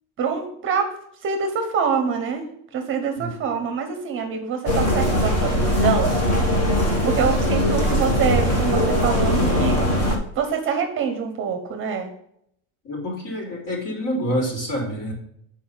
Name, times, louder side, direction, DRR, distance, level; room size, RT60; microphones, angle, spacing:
voice 1, 0.2-0.9 1.2-6.2 7.0-12.1, right 6 dB, 30° right, 6 dB, 0.9 m, -25 dB
sound 1, 4.7-10.2, equal, 35° left, 1.6 m, -20 dB
voice 2, 12.8-15.1, equal, 50° left, -1 dB, 3.7 m, -27 dB
7.7 x 4.7 x 5.6 m, 0.72 s
cardioid pair, 170°, 40 cm